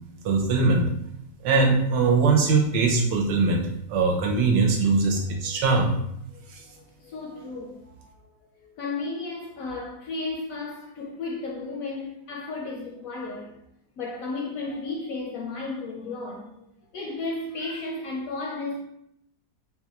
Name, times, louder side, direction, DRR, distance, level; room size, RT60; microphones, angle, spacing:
voice 1, 0.2-0.9 1.4-5.9 6.5-6.6, right 4 dB, 80° right, 1.3 m, -21 dB
voice 2, 5.1-5.6 6.8-13.5 14.0-16.6 16.9-18.8, left 3 dB, 70° left, 0.8 m, -34 dB
3.9 x 2.4 x 2.9 m
omnidirectional pair, 1.9 m